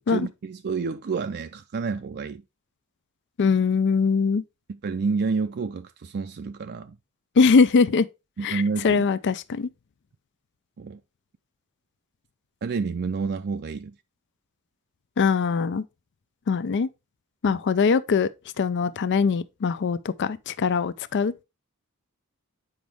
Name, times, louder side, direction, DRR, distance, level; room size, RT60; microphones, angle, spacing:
voice 1, 0.0-2.4 4.8-7.0 8.4-9.1 10.8-11.0 12.6-13.9 17.4-17.6 19.1-19.2, right 4 dB, 50° right, 0.4 m, -29 dB
voice 2, 3.4-4.4 7.4-8.1 8.4-9.7 15.2-15.8 16.5-16.9 17.4-18.3 18.6-21.4, left 5 dB, 55° left, 0.4 m, -22 dB
7.8 x 5.1 x 3.5 m
head